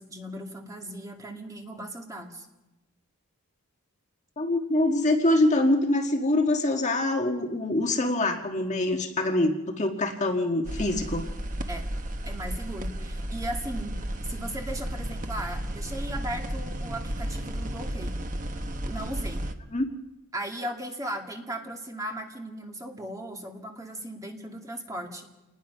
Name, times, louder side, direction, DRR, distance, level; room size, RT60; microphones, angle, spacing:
voice 1, 0.0-2.5 11.7-11.9 12.2-18.2 18.9-19.5 20.3-25.3, right 1 dB, 15° right, 1 dB, 2.3 m, -37 dB
voice 2, 4.4-11.2 19.7-19.9, left 1 dB, 35° left, 3 dB, 1.6 m, -24 dB
sound 1, 10.6-19.5, right 1 dB, 35° right, 1.2 m, -33 dB
28.0 x 20.0 x 5.6 m, 1.0 s
head